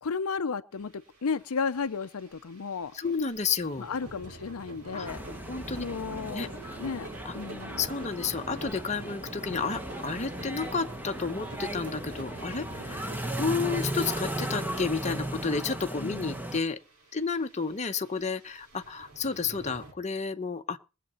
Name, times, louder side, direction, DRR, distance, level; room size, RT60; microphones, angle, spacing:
voice 1, 0.0-2.9 3.8-5.2 5.8-6.5 6.8-7.1 7.3-7.9 16.0-16.4, left 5 dB, 70° left, 0.6 m, -33 dB
sound 1, 0.7-19.9, right 2 dB, 90° right, 3.8 m, -47 dB
voice 2, 2.9-3.9 4.9-5.1 5.5-5.8 6.3-6.8 7.2-7.3 7.8-13.1 13.4-16.8 17.1-20.8, left 5 dB, 30° left, 0.8 m, -31 dB
sound 2, 5.1-16.6, right 1 dB, 10° right, 1.2 m, -36 dB
21.5 x 7.7 x 4.3 m
head